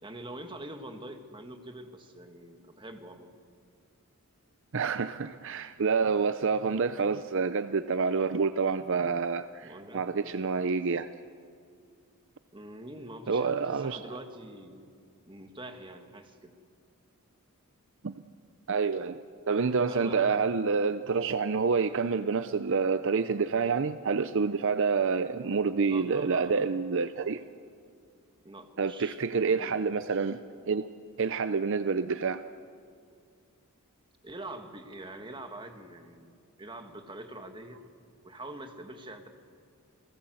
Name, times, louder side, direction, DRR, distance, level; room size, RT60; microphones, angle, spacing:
voice 1, 0.0-3.3 9.6-10.7 12.5-14.9 15.3-16.6 19.9-20.5 25.8-26.7 28.4-29.8 34.2-37.8 38.2-39.3, right 1 dB, 20° right, 5 dB, 1.9 m, -45 dB
voice 2, 4.7-11.1 13.3-14.0 18.0-18.1 18.7-19.2 19.5-27.4 28.8-30.4 30.7-30.9 31.2-32.4, right 5 dB, 60° right, 12 dB, 0.6 m, -28 dB
28.5 x 18.5 x 7.9 m, 2.3 s
head